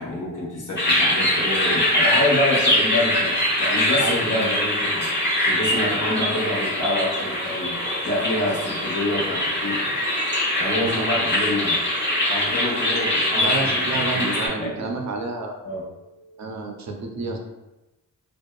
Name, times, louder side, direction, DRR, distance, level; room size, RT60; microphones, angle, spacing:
voice 1, 0.0-5.1 5.5-7.8 8.0-9.9 10.6-11.8 12.3-14.9 15.6-16.6, left 1 dB, 60° left, -4 dB, 1.1 m, -27 dB
sound 1, 0.8-14.5, left 1 dB, 30° left, 1.2 m, -23 dB
voice 2, 4.0-4.6 10.8-11.1 13.4-15.5 16.4-17.4, right 3 dB, 55° right, 2 dB, 0.5 m, -29 dB
2.6 x 2.3 x 2.3 m, 1.0 s
cardioid pair, 55°, 35 cm